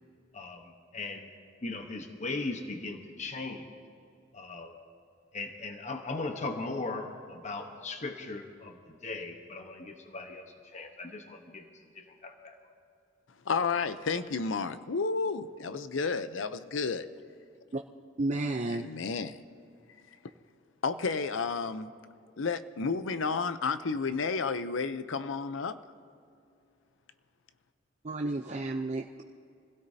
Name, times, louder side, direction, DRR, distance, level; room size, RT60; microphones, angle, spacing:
voice 1, 0.3-1.3 1.6-3.7 4.3-4.8 5.3-11.7 11.9-12.6, left 3 dB, 40° left, 4 dB, 1.0 m, -38 dB
voice 2, 13.5-17.1 18.6-19.4 20.8-21.9 22.4-25.8, left 4 dB, 85° left, 12 dB, 0.6 m, -31 dB
voice 3, 18.2-18.9 28.0-29.2, right 2 dB, 35° right, 3 dB, 0.5 m, -32 dB
25.5 x 16.5 x 2.8 m, 2.5 s
head